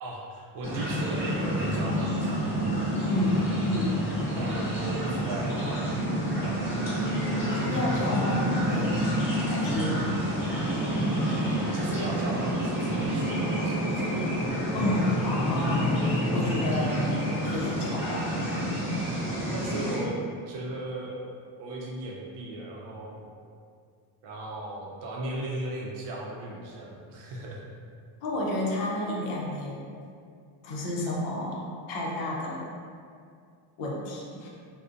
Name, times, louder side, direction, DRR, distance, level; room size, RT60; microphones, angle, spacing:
voice 1, 0.0-2.8 4.4-6.2 6.4-7.6 8.6-8.7 11.7-14.1 19.5-20.2 20.5-21.2 21.6-23.3 24.2-27.6, right 1 dB, 60° right, -3 dB, 0.5 m, -37 dB
sound 1, 0.6-20.0, equal, 5° right, 0.9 m, -28 dB
voice 2, 3.1-3.4 3.7-4.0 7.6-9.1 9.4-10.2 14.7-17.2 17.4-18.5 28.2-29.8 30.6-32.6 33.8-34.5, left 2 dB, 70° left, -4 dB, 0.6 m, -30 dB
sound 2, 9.7-18.1, left 1 dB, 50° left, 0.9 m, -43 dB
2.5 x 2.1 x 2.4 m, 2.2 s
cardioid pair, 145°, 47 cm